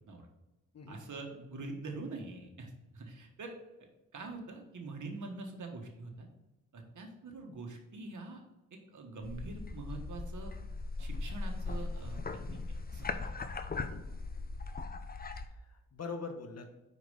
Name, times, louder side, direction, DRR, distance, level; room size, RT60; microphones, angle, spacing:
voice 1, 0.9-3.5 4.1-6.3 6.7-8.4 8.7-10.5 11.0-12.2 12.5-13.3, right 3 dB, 55° right, 3 dB, 1.4 m, -44 dB
sound 1, 9.2-15.5, left 3 dB, 25° left, 0.6 m, -39 dB
voice 2, 13.7-14.0 15.4-16.7, left 4 dB, 45° left, 6 dB, 1.2 m, -43 dB
4.8 x 4.3 x 5.5 m, 1.0 s
supercardioid pair, 50°, 35 cm